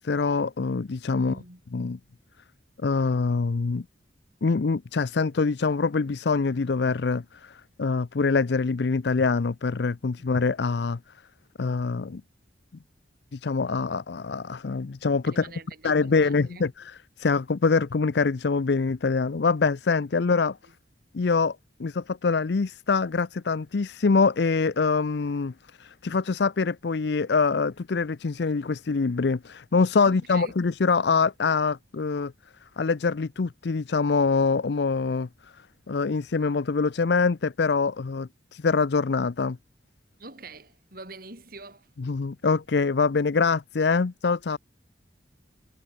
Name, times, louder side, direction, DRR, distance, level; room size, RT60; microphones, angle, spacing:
voice 1, 0.0-1.4 1.7-2.0 2.8-3.8 4.4-11.0 11.6-12.2 13.3-15.5 15.8-16.9 17.2-20.6 21.1-25.5 25.8-32.3 32.8-35.3 35.9-39.6 42.0-44.6, left 4 dB, 65° left, 0.5 m, -24 dB
voice 2, 1.2-1.6 10.2-10.4 15.3-16.7 20.6-20.7 30.0-30.5 40.2-41.9, right 3 dB, 50° right, 6.6 m, -45 dB
head